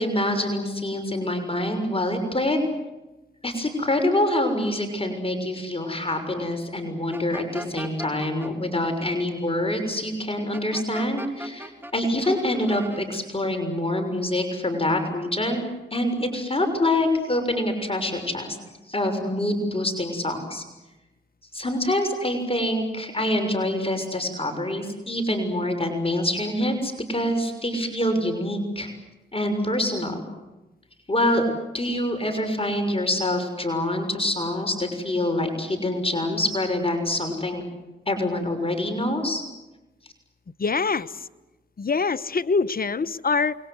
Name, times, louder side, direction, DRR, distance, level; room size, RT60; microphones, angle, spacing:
voice 1, 0.0-2.6 3.4-15.6 15.9-18.6 18.9-20.6 21.5-28.9 29.3-30.2 31.1-31.5 31.7-37.6 38.1-39.4, left 1 dB, 30° left, 5 dB, 6.6 m, -25 dB
sound 1, 7.1-8.5 10.5-11.9 12.2-13.0, right 1 dB, 10° right, 3.6 m, -38 dB
voice 2, 40.6-41.1 41.8-43.6, left 4 dB, 45° left, 15 dB, 1.1 m, -24 dB
29.0 x 22.5 x 8.2 m, 1.0 s
supercardioid pair, 40°, 20 cm